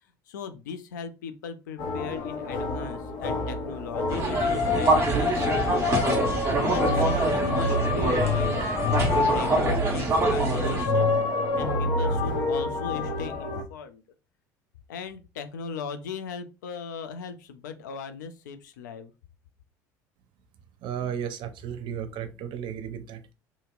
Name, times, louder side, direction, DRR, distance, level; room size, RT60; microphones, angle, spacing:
voice 1, 0.3-6.0 6.4-8.7 9.1-11.2 11.5-14.0 14.9-19.1, left 6 dB, 80° left, 0.4 m, -38 dB
sound 1, 1.8-13.6, left 3 dB, 60° left, 0.8 m, -27 dB
sound 2, 4.1-10.9, right 3 dB, 30° right, 1.2 m, -26 dB
voice 2, 20.8-23.3, right 8 dB, 55° right, 0.6 m, -34 dB
2.8 x 2.8 x 2.4 m
hypercardioid pair, 70°, 10 cm